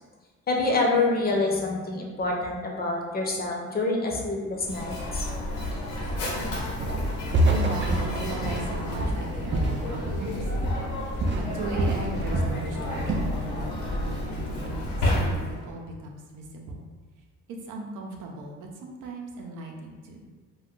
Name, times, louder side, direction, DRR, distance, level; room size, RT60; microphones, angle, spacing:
voice 1, 0.5-5.2, left 3 dB, 30° left, -1 dB, 0.6 m, -26 dB
Mechanisms, 4.6-15.7, left 1 dB, 85° left, 0.9 m, -31 dB
Walk footsteps, 6.8-7.1 7.3-10.4 10.6-10.9 11.2-12.6 12.9-13.3, right 1 dB, 40° right, 0.4 m, -26 dB
voice 2, 7.5-10.7 11.0-16.8 17.5-20.3, right 2 dB, 85° right, 1 dB, 0.6 m, -37 dB
2.5 x 2.3 x 3.6 m, 1.4 s
cardioid pair, 90°, 30 cm